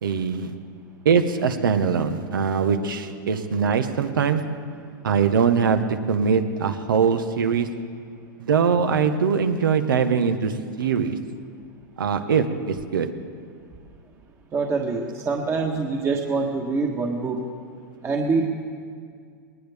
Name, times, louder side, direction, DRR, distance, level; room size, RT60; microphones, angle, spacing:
voice 1, 0.0-0.5 1.0-4.5 5.0-7.7 8.4-11.2 12.0-13.1, right 6 dB, 85° right, 8 dB, 1.2 m, -22 dB
voice 2, 14.5-17.4 18.0-18.4, right 4 dB, 25° right, 0 dB, 1.4 m, -25 dB
21.0 x 19.0 x 3.5 m, 2.2 s
hypercardioid pair, 120°, 11 cm